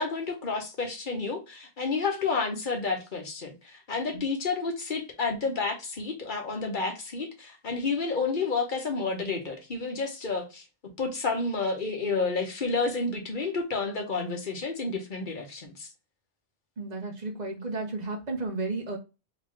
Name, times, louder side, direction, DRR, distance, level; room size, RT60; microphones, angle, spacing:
voice 1, 0.0-10.6 11.0-15.9, left 4 dB, 50° left, 1.1 m, -30 dB
voice 2, 16.8-19.0, right 3 dB, 40° right, 1.1 m, -33 dB
3.7 x 3.0 x 3.1 m
omnidirectional pair, 1.1 m